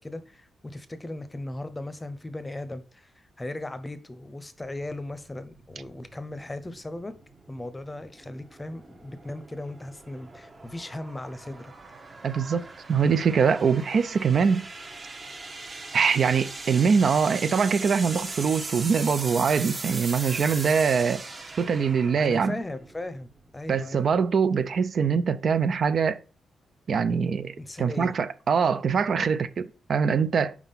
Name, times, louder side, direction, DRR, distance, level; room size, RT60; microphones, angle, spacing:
voice 1, 0.0-3.1 3.4-7.1 7.5-11.7 22.1-24.1 27.6-28.1, left 1 dB, 15° left, 0.7 m, -37 dB
sound 1, 4.6-23.7, right 3 dB, 35° right, 0.9 m, -40 dB
voice 2, 12.2-14.6 15.9-21.2 21.6-22.5 23.7-26.2 26.9-30.6, right 6 dB, 60° right, 0.4 m, -23 dB
4.7 x 3.7 x 5.6 m
cardioid pair, 85°, 0 cm